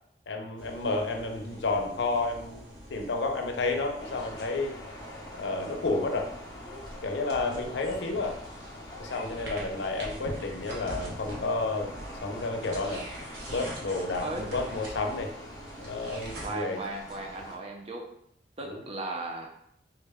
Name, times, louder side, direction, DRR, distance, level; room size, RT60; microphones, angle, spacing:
voice 1, 0.3-4.8 5.3-6.3 7.0-8.4 9.0-11.9 12.2-13.0 13.5-15.3 15.8-16.8 18.6-18.8, left 3 dB, 80° left, 4 dB, 0.5 m, -31 dB
sound 1, 0.6-16.5, right 1 dB, 85° right, 0.9 m, -43 dB
sound 2, 4.0-17.6, left 1 dB, 20° left, 0.6 m, -46 dB
voice 2, 16.4-18.1 18.6-19.5, right 2 dB, 35° right, 1 dB, 0.5 m, -36 dB
3.7 x 2.1 x 3.4 m, 0.72 s
head